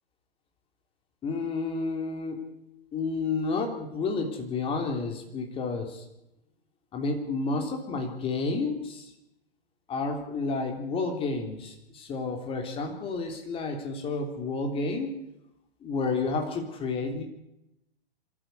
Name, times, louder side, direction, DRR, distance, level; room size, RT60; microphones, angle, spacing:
voice 1, 1.2-2.5 2.9-6.0 6.9-9.1 9.9-15.1 15.8-17.2, left 3 dB, 15° left, 4 dB, 3.4 m, -30 dB
25.0 x 14.0 x 8.2 m, 0.86 s
figure-of-eight pair, 120°, 31 cm